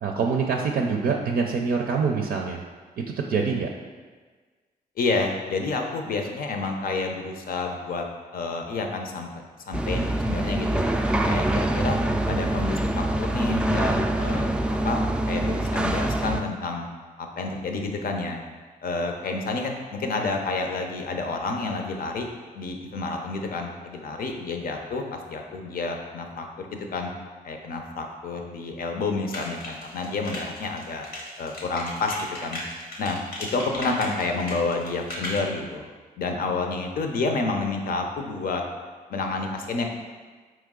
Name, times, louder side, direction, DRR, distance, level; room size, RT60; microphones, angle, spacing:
voice 1, 0.0-2.6 3.0-3.7, right 5 dB, 70° right, 1 dB, 0.4 m, -25 dB
voice 2, 5.0-8.0 8.3-9.3 9.7-10.9 11.2-12.0 12.3-14.5 14.8-16.9 17.2-18.4 18.8-22.3 22.5-27.1 27.4-31.1 31.4-32.6 33.0-35.9 36.2-38.6 39.1-39.9, left 3 dB, 65° left, 3 dB, 0.6 m, -29 dB
sound 1, 9.7-16.4, right 1 dB, 5° right, 0.3 m, -25 dB
sound 2, 29.3-35.4, left 1 dB, 90° left, 1.1 m, -36 dB
4.5 x 3.1 x 3.7 m, 1.4 s
cardioid pair, 65°, 16 cm